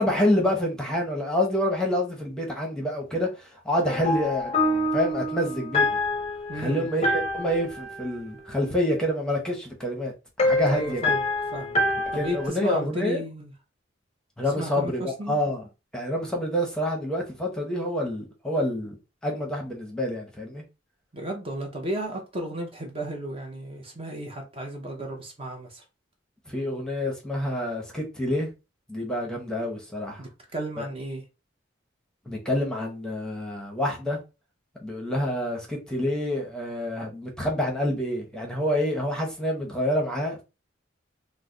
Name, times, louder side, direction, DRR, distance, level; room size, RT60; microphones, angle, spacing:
voice 1, 0.0-6.0 6.5-10.1 10.4-11.0 12.1-13.2 14.4-15.6 15.9-19.0 19.2-20.6 26.5-28.5 28.9-30.2 30.8-30.9 32.3-34.2 34.8-40.4, left 1 dB, 5° left, 0.8 m, -27 dB
sound 1, 3.8-9.0 10.4-12.5, left 1 dB, 30° left, 0.6 m, -27 dB
voice 2, 6.5-6.9 10.7-11.2 11.5-11.8 12.1-13.5 14.6-15.4 21.1-25.8 30.2-31.2, right 1 dB, 30° right, 0.7 m, -34 dB
3.2 x 2.1 x 3.7 m
head